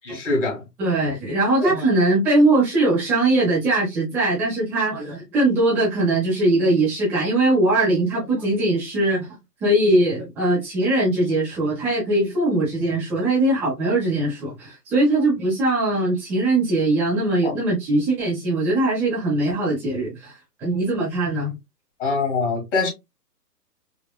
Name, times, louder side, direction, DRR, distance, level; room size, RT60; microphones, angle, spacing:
voice 1, 0.0-0.6 1.6-1.7 17.4-17.5 22.0-22.9, left 3 dB, 45° left, 2.0 m, -23 dB
voice 2, 0.8-9.3 9.6-20.3 20.6-21.5, right 2 dB, 5° right, 0.7 m, -21 dB
5.1 x 2.2 x 2.2 m
hypercardioid pair, 145°, 49 cm